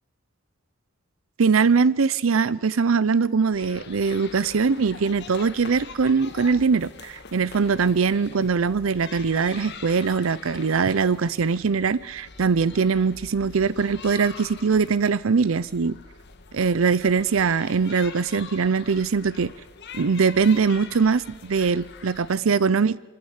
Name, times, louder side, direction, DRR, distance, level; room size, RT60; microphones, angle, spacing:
voice 1, 1.4-16.0 16.5-19.5 19.9-23.0, right 5 dB, 75° right, 0.6 m, -22 dB
sound 1, 3.5-22.3, left 5 dB, 55° left, 1.4 m, -43 dB
24.0 x 14.0 x 8.1 m
head